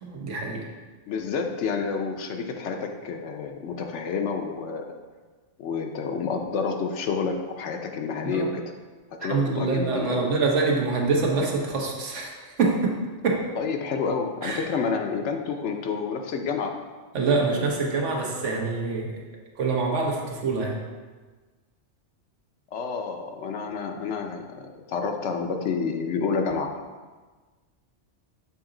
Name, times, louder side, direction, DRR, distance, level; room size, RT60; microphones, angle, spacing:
voice 1, 0.0-0.6 8.2-8.5 9.2-13.0 13.2-13.4 14.4-14.6 17.1-19.1 19.6-20.8, right 3 dB, 90° right, 0 dB, 1.3 m, -25 dB
voice 2, 1.1-5.0 5.6-8.6 9.2-10.2 13.6-16.8 22.7-26.8, left 5 dB, 80° left, 4 dB, 0.9 m, -29 dB
7.1 x 3.9 x 3.8 m, 1.4 s
omnidirectional pair, 1.2 m